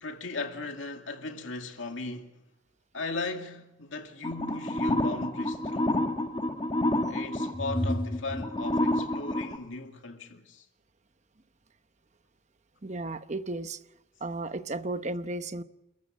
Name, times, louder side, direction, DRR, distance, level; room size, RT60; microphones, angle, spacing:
voice 1, 0.0-2.4 2.9-6.0 7.1-10.7, left 3 dB, 85° left, 2.3 m, -37 dB
sound 1, 4.2-9.6, left 1 dB, 25° left, 1.6 m, -29 dB
voice 2, 12.8-13.8 14.2-15.6, right 2 dB, 35° right, 0.9 m, -34 dB
28.5 x 14.5 x 7.4 m
head